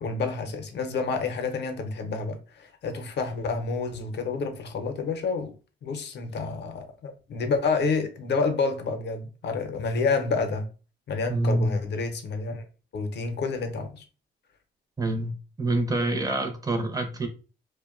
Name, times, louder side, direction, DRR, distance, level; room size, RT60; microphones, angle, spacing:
voice 1, 0.0-5.5 5.8-10.7 11.1-12.6 12.9-14.1, left 4 dB, 60° left, 0.6 m, -29 dB
voice 2, 11.3-11.8 15.0-17.3, right 2 dB, 20° right, 0.5 m, -26 dB
2.6 x 2.1 x 2.3 m
cardioid pair, 90°, 20 cm